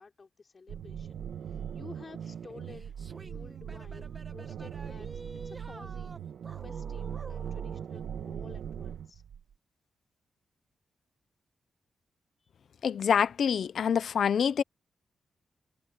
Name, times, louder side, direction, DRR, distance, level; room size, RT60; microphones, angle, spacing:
voice 1, 0.0-6.1 6.5-9.2 12.4-12.5, left 4 dB, 35° left, 4.4 m, -52 dB
sound 1, 0.7-9.5, right 8 dB, 90° right, 2.0 m, -40 dB
sound 2, 2.2-7.9, right 3 dB, 25° right, 1.9 m, -49 dB
voice 2, 12.8-14.6, left 7 dB, 65° left, 0.6 m, -26 dB
wide cardioid pair, 135°, 0 cm